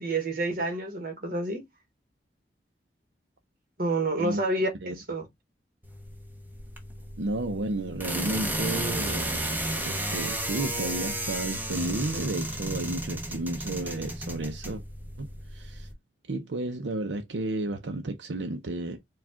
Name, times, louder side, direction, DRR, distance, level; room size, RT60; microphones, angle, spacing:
voice 1, 0.0-1.6 3.8-5.3, right 2 dB, 50° right, 1.3 m, -29 dB
sound 1, 5.8-15.9, right 1 dB, 10° right, 0.8 m, -33 dB
voice 2, 7.2-9.4 9.8-14.8 15.2-15.9 16.3-19.0, right 2 dB, 85° right, 0.7 m, -32 dB
4.8 x 2.4 x 3.6 m
head